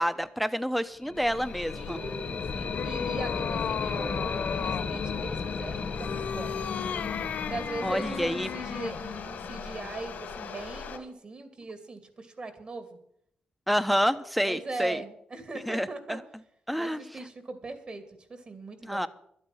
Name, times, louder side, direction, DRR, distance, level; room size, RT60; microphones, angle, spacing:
voice 1, 0.0-2.0 7.8-8.5 13.7-15.0 15.7-16.2 16.7-17.0 18.8-19.1, equal, ahead, 13 dB, 0.9 m, -28 dB
sound 1, 1.0-10.8, left 5 dB, 50° left, 1.2 m, -35 dB
sound 2, 1.1-11.0, left 6 dB, 90° left, 2.2 m, -42 dB
voice 2, 1.7-6.6 7.5-13.0 14.5-16.2 16.8-19.1, right 3 dB, 40° right, 8 dB, 2.5 m, -40 dB
sound 3, 2.0-4.9 5.9-9.0, left 7 dB, 75° left, 0.8 m, -36 dB
12.5 x 8.8 x 7.8 m, 0.70 s
cardioid pair, 105°, 3 cm